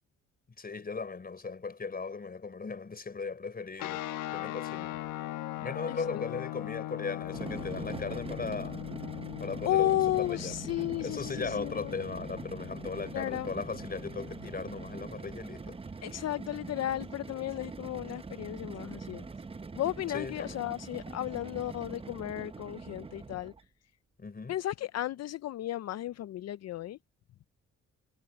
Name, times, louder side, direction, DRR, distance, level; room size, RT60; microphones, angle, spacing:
voice 1, 0.6-4.0 4.3-5.0 5.6-8.8 9.4-10.5 11.0-15.8 20.1-20.6 24.2-24.5, left 4 dB, 30° left, 4.7 m, -38 dB
sound 1, 3.8-15.0, left 16 dB, 90° left, 1.2 m, -40 dB
voice 2, 5.9-6.2 9.7-12.0 13.1-13.5 16.0-19.2 19.8-23.5 24.5-27.0, left 13 dB, 60° left, 0.6 m, -33 dB
sound 2, 7.2-23.7, right 4 dB, 20° right, 0.8 m, -43 dB
cardioid pair, 90°, 30 cm